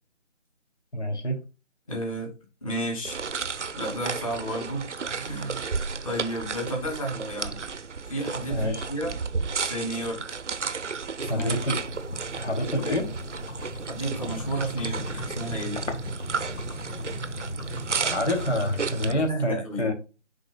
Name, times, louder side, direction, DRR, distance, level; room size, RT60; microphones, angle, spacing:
voice 1, 0.9-1.4 8.5-8.9 11.3-11.8 12.4-13.1 18.0-19.9, left 1 dB, 65° left, 2.7 m, -27 dB
voice 2, 1.9-2.3 2.6-3.2 3.8-5.7 6.0-7.6 8.0-9.2 9.6-10.3 11.2-11.5 13.9-15.8 19.3-19.9, right 1 dB, 25° left, 2.4 m, -32 dB
sound 1, 3.0-19.1, right 5 dB, 70° right, 0.7 m, -33 dB
sound 2, 11.2-19.3, equal, 80° left, 1.9 m, -36 dB
10.5 x 4.2 x 2.3 m
figure-of-eight pair, 165°, 37 cm